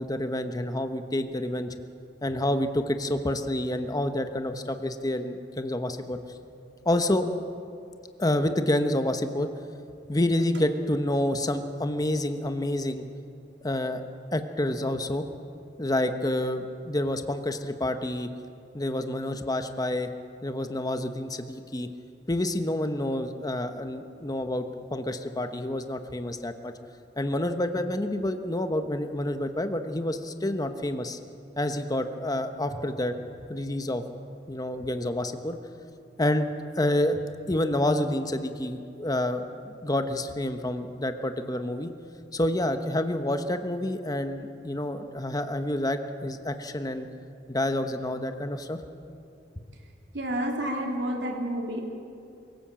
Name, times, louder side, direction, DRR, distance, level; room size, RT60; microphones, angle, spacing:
voice 1, 0.0-1.7 2.2-6.2 6.8-7.3 8.2-9.5 10.1-13.0 13.6-14.0 14.3-15.3 15.8-18.3 18.7-20.1 20.4-21.9 22.3-26.7 27.2-31.2 31.6-33.2 33.5-34.0 34.5-35.6 36.2-36.5 36.7-37.2 37.5-41.9 42.3-47.1 47.5-48.8, left 1 dB, 20° left, 7 dB, 1.0 m, -28 dB
voice 2, 50.1-51.8, right 1 dB, 70° right, 1 dB, 3.3 m, -29 dB
23.5 x 16.0 x 7.6 m, 2.6 s
head